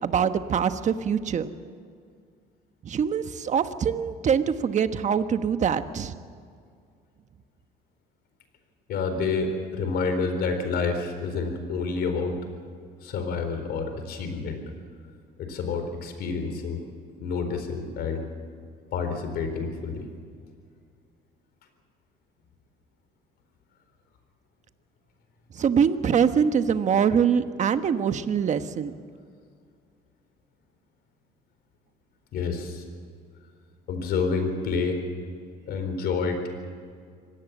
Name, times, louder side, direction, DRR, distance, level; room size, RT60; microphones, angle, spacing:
voice 1, 0.0-1.5 2.8-6.1 25.5-28.9, right 7 dB, 45° right, 10 dB, 1.2 m, -24 dB
voice 2, 8.9-12.4 13.0-14.6 15.4-16.8 17.2-18.2 18.9-20.0 32.3-32.8 33.9-35.0 35.7-36.5, left 4 dB, 70° left, 7 dB, 4.4 m, -28 dB
25.5 x 18.0 x 7.3 m, 2.2 s
cardioid pair, 110°, 17 cm